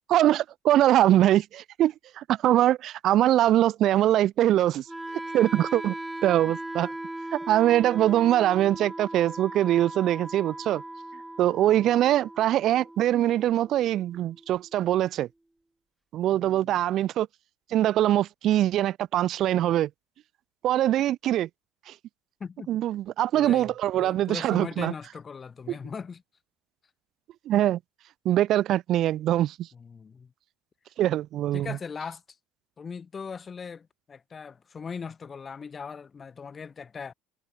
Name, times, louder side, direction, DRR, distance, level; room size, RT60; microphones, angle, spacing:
voice 1, 0.1-4.9 5.3-5.9 6.2-6.9 7.3-10.8 11.4-15.3 16.1-17.3 17.7-19.9 20.6-21.5 21.9-22.0 22.7-24.9 27.5-27.8 28.2-29.7 31.0-31.8, right 13 dB, 50° right, 1.0 m, -23 dB
Wind instrument woodwind instrument, 4.9-14.9, right 1 dB, 5° right, 1.1 m, -39 dB
voice 2, 16.3-16.8 22.4-22.7 23.3-26.2 29.7-30.3 31.5-32.4 32.8-37.1, left 6 dB, 25° left, 4.1 m, -39 dB
cardioid pair, 130°, 0 cm